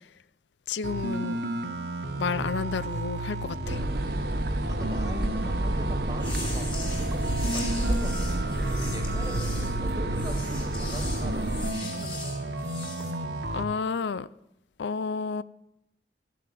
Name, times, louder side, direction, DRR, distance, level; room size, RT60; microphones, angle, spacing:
voice 1, 0.7-1.4 2.1-3.8 13.5-14.3 14.8-15.4, left 5 dB, 85° left, 0.5 m, -31 dB
sound 1, 0.8-13.6, right 1 dB, 80° right, 1.4 m, -33 dB
sound 2, 3.6-11.7, right 1 dB, 60° right, 1.1 m, -30 dB
voice 2, 4.7-12.5, right 1 dB, 20° right, 1.6 m, -42 dB
sound 3, 6.1-13.1, left 3 dB, 30° left, 3.4 m, -40 dB
14.0 x 7.5 x 7.6 m
head